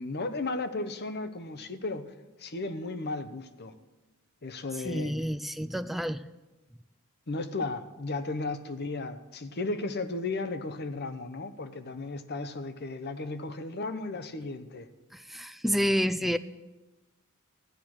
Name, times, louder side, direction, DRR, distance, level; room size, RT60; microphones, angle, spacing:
voice 1, 0.0-2.1 2.4-3.7 4.4-5.1 7.3-14.9, left 3 dB, 50° left, 11 dB, 0.9 m, -35 dB
voice 2, 4.8-6.2 15.1-16.4, equal, ahead, 11 dB, 0.4 m, -29 dB
14.0 x 10.0 x 6.2 m, 1.1 s
head